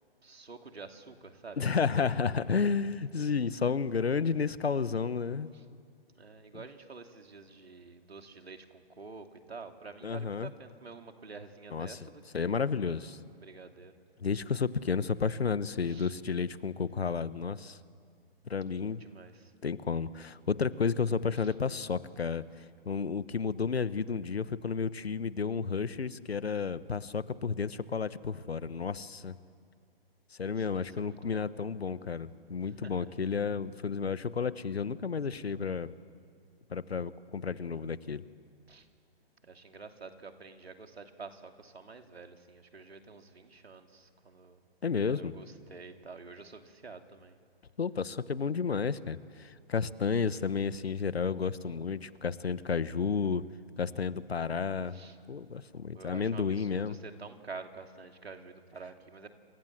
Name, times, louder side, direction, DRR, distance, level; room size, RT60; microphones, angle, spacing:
voice 1, 0.2-2.2 5.5-5.6 6.2-12.7 13.0-13.9 15.9-16.1 18.8-19.5 21.3-21.5 30.6-31.5 32.6-33.1 38.7-38.9 39.4-44.6 45.1-47.4 54.3-54.4 54.9-55.2 55.9-59.3, right 4 dB, 85° right, 5 dB, 2.9 m, -49 dB
voice 2, 1.6-5.5 6.5-6.6 10.0-10.5 11.7-12.0 12.3-13.2 14.2-17.8 18.5-19.0 19.6-29.4 30.4-35.9 36.7-38.2 44.8-45.3 47.8-53.4 53.8-55.0 55.3-57.0, left 5 dB, 85° left, 15 dB, 1.3 m, -32 dB
27.5 x 27.0 x 7.6 m, 2.2 s
hypercardioid pair, 135°, 30 cm